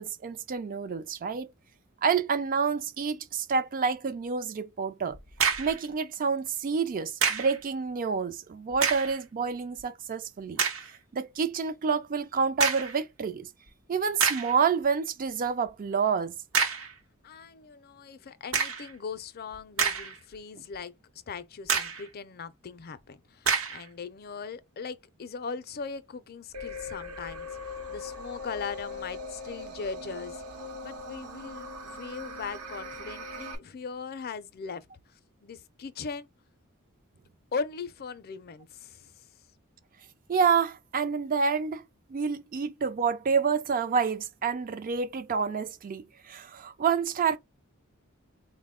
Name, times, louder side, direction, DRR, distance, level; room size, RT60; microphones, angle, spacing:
voice 1, 0.0-1.5 2.0-5.2 5.6-10.6 11.1-13.5 13.9-16.4 40.3-41.8 42.1-47.4, right 5 dB, 40° right, 0.4 m, -28 dB
sound 1, 5.1-5.8 7.2-7.6 8.7-9.2 9.8-9.9 10.6-10.9 12.6-13.0 13.7-13.8 14.2-14.6 16.5-16.9 18.5-18.9 19.5-20.3 20.7-20.8 21.7-22.1 23.4-23.8, right 6 dB, 70° right, 0.8 m, -27 dB
voice 2, 17.2-20.9 21.3-30.4 30.8-34.9 35.4-36.3 37.5-39.1, left 5 dB, 45° left, 0.5 m, -39 dB
sound 2, 26.5-33.5, left 2 dB, 90° right, 1.0 m, -40 dB
4.0 x 2.2 x 3.6 m
head